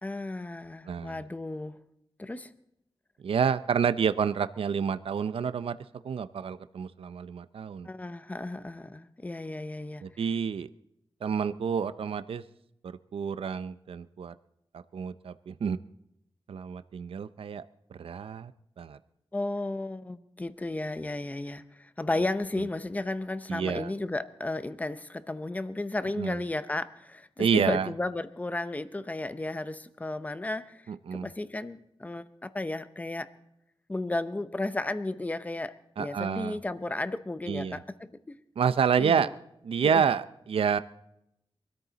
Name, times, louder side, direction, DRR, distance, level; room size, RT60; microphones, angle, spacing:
voice 1, 0.0-1.8 2.2-2.5 7.8-10.0 19.3-33.3 33.9-38.4 39.0-39.3 39.8-40.0, left 2 dB, 15° left, 12 dB, 0.7 m, -34 dB
voice 2, 0.9-1.2 3.2-5.8 6.0-7.9 10.0-10.7 11.2-12.4 12.8-14.3 14.9-15.8 16.5-17.6 18.0-18.5 18.8-19.0 23.5-23.9 26.2-26.4 27.4-27.9 30.9-31.3 36.0-36.6 37.5-37.8 38.6-39.3 39.6-40.8, right 7 dB, 70° right, 13 dB, 0.5 m, -28 dB
23.5 x 13.5 x 4.0 m, 0.81 s
wide cardioid pair, 160°, 10 cm